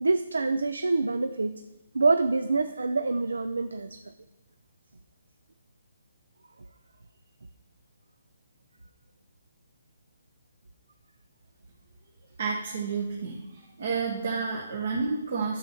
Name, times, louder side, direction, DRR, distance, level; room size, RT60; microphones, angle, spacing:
voice 1, 0.0-1.6 1.9-4.0, right 3 dB, 90° right, 11 dB, 0.4 m, -26 dB
voice 2, 12.4-15.6, right 4 dB, 65° right, 0 dB, 1.4 m, -30 dB
9.8 x 6.9 x 4.6 m, 1.1 s
hypercardioid pair, 145°, 0 cm